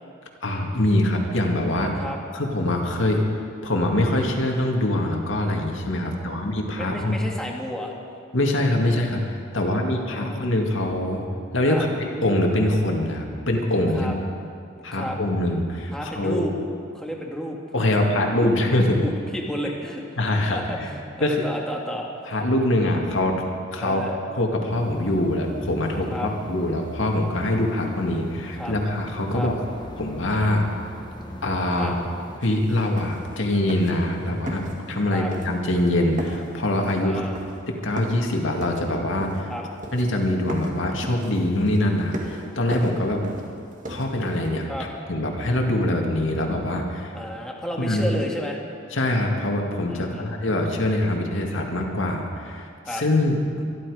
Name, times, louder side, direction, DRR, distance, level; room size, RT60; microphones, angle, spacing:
voice 1, 0.4-2.0 2.3-3.2 3.6-7.2 8.3-11.2 11.5-14.1 14.8-16.5 17.7-19.0 20.2-20.9 21.2-21.4 22.3-23.5 23.7-24.0 24.4-29.5 30.0-30.7 31.4-31.9 32.4-37.2 37.7-39.5 39.9-43.2 43.9-44.7 45.1-47.1 47.8-48.0 48.9-53.6, left 1 dB, 70° left, 1 dB, 2.1 m, -24 dB
voice 2, 6.0-6.4 6.8-7.9 9.5-10.5 11.7-11.9 13.9-14.2 14.8-15.2 15.9-16.5 16.9-17.6 18.8-20.0 20.5-20.8 21.2-22.0 23.8-24.2 26.1-26.3 28.6-28.7 29.3-29.5 31.8-31.9 35.1-35.3 37.0-37.4 39.5-39.6 44.7-44.9 47.1-48.6 49.9-50.3 52.9-53.0, equal, 5° left, -1 dB, 1.9 m, -32 dB
sound 1, 24.7-32.4, left 1 dB, 20° left, 1.3 m, -41 dB
sound 2, 32.4-32.5 32.8-33.4 33.7-34.1 34.5-35.0 35.3-35.9 36.2-38.3 38.6-39.5 39.8-40.2 40.5-44.5, equal, 40° right, 2.0 m, -36 dB
24.0 x 12.0 x 4.9 m, 2.3 s
head